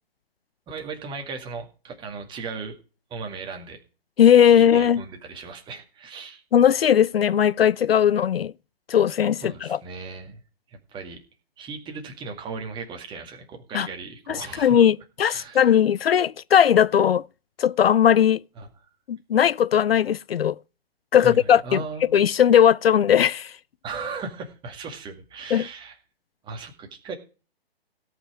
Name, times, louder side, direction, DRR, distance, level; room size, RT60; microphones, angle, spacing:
voice 1, 0.7-2.8 3.1-3.8 4.5-6.4 9.4-10.4 10.7-11.2 11.6-14.9 15.2-15.6 18.6-18.7 21.2-22.3 23.8-25.9 26.4-27.1, right 4 dB, 15° right, 2.0 m, -37 dB
voice 2, 4.2-5.0 6.5-8.5 8.9-9.8 13.7-13.9 14.3-17.3 17.6-18.4 19.1-20.6 21.1-21.8 22.1-23.5 25.5-25.7, left 9 dB, 70° left, 0.5 m, -18 dB
17.5 x 5.9 x 4.9 m
figure-of-eight pair, 130°, 30 cm